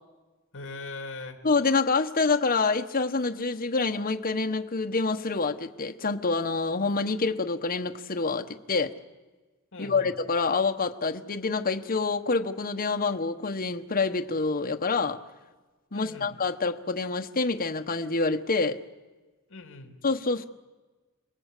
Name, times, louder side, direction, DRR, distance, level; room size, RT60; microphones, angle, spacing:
voice 1, 0.5-1.4 9.7-10.1 15.9-16.3 19.5-19.9, left 3 dB, 60° left, 4 dB, 3.0 m, -40 dB
voice 2, 1.4-8.9 9.8-15.2 15.9-18.8 20.0-20.4, left 4 dB, 40° left, 5 dB, 1.1 m, -27 dB
29.0 x 20.5 x 8.3 m, 1.3 s
head